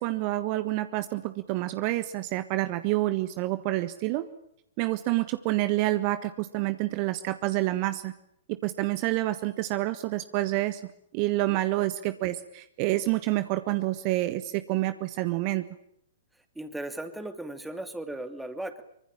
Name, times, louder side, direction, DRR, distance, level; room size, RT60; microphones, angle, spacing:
voice 1, 0.0-4.3 4.8-8.1 8.5-10.8 11.1-15.6, right 17 dB, 35° right, 11 dB, 1.5 m, -28 dB
voice 2, 16.6-18.8, right 1 dB, 5° right, 9 dB, 2.7 m, -37 dB
25.0 x 25.0 x 8.9 m, 0.74 s
figure-of-eight pair, 110°, 0 cm